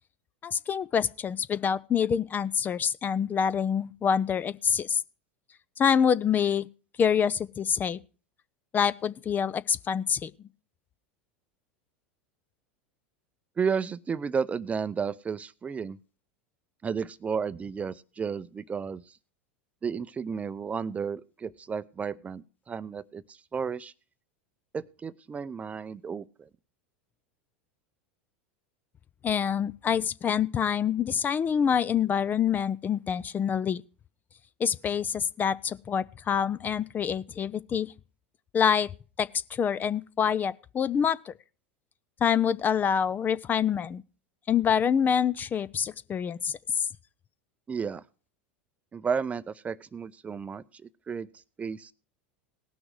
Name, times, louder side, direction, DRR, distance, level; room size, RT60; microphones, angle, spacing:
voice 1, 0.4-5.0 5.8-6.7 7.0-8.0 8.7-10.3 29.2-33.8 34.6-37.9 38.5-38.9 39.2-41.3 42.2-44.0 44.5-46.9, left 7 dB, 30° left, 0.5 m, -26 dB
voice 2, 13.6-16.0 16.8-19.0 19.8-23.9 24.7-26.5 47.7-48.0 48.9-50.8 51.1-51.3 51.6-51.9, right 6 dB, 20° right, 0.6 m, -32 dB
18.0 x 6.2 x 4.7 m
hypercardioid pair, 90°, 6 cm